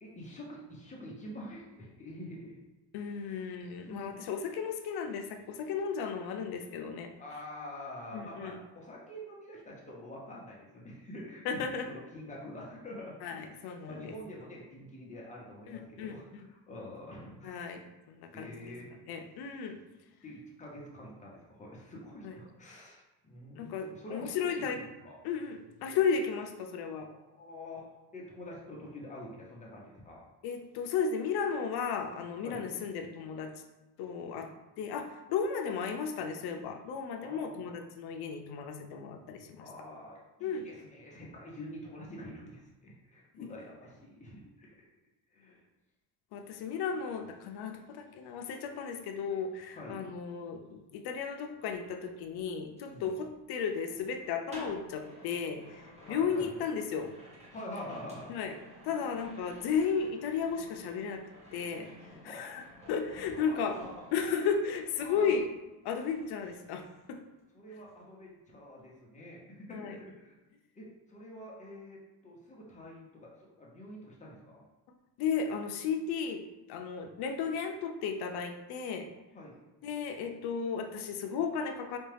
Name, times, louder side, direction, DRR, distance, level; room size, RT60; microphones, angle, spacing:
voice 1, 0.0-2.6 3.1-3.5 3.9-4.2 7.2-13.6 13.9-17.7 18.3-18.9 20.2-25.2 27.1-27.8 28.1-30.2 32.4-32.7 37.2-37.8 39.6-44.9 45.3-45.6 49.7-50.0 52.8-53.1 56.0-56.5 57.5-58.3 62.2-62.5 63.3-64.1 65.0-65.3 67.5-70.3 70.8-74.6 79.3-79.6, left 1 dB, 15° left, -4 dB, 0.8 m, -46 dB
voice 2, 2.9-7.1 8.1-8.6 11.4-11.9 13.2-14.1 15.7-16.5 17.4-17.8 18.1-18.7 19.1-19.8 22.2-22.4 23.6-24.8 25.2-27.1 30.4-33.5 34.0-34.5 34.8-39.7 40.4-40.7 43.4-43.5 46.3-55.8 56.1-57.1 58.3-58.5 58.8-61.2 61.5-61.9 62.2-63.8 64.1-65.5 65.8-67.2 69.7-70.0 75.2-76.4 76.7-79.1 79.8-82.0, left 6 dB, 65° left, 5 dB, 0.6 m, -34 dB
sound 1, 51.5-65.6 65.9-67.4 67.7-68.0, left 1 dB, 15° right, 0.9 m, -54 dB
4.3 x 2.3 x 3.3 m, 1.1 s
cardioid pair, 145°, 43 cm